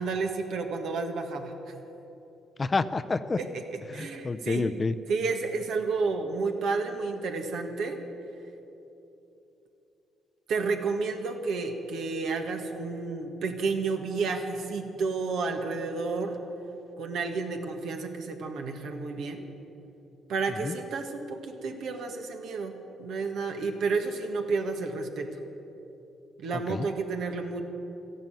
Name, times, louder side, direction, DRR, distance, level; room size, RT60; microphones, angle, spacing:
voice 1, 0.0-1.5 3.4-4.6 5.1-8.0 10.5-16.4 17.0-19.5 20.3-25.3 26.4-27.6, right 4 dB, 75° right, 4 dB, 1.7 m, -31 dB
voice 2, 2.6-3.4 3.9-4.9 20.6-20.8 26.7-26.9, left 3 dB, 30° left, 12 dB, 0.6 m, -28 dB
14.0 x 11.5 x 9.1 m, 3.0 s
cardioid pair, 90°, 0 cm